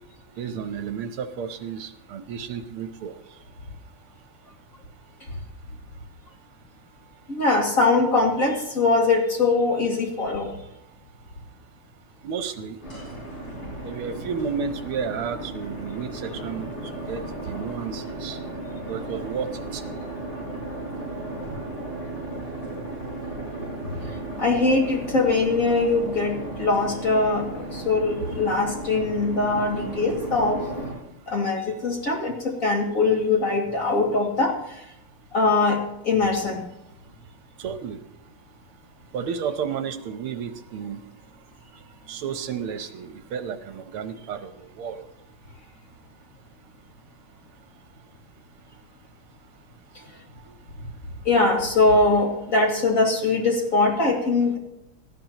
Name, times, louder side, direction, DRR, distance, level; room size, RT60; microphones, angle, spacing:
voice 1, 0.4-3.1 12.2-12.8 13.8-18.4 18.9-19.8 37.6-38.0 39.1-41.0 42.1-45.0, right 7 dB, 80° right, 9 dB, 1.9 m, -32 dB
voice 2, 7.3-10.5 24.4-27.5 27.7-30.6 31.3-34.5 35.3-36.6 51.2-54.6, left 3 dB, 40° left, -1 dB, 2.8 m, -22 dB
sound 1, 12.8-31.0, right 2 dB, 80° left, 7.1 m, -35 dB
18.5 x 14.0 x 3.0 m, 0.82 s
omnidirectional pair, 2.4 m